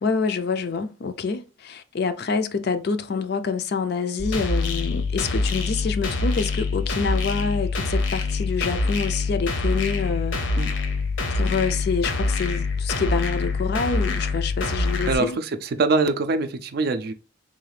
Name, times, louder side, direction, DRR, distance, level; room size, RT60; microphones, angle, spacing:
voice 1, 0.0-10.4 11.3-15.4, left 5 dB, 55° left, 0.4 m, -27 dB
sound 1, 4.2-15.2, left 3 dB, 75° left, 0.8 m, -25 dB
voice 2, 15.1-17.1, right 3 dB, 50° right, 0.4 m, -23 dB
3.8 x 2.4 x 3.2 m
head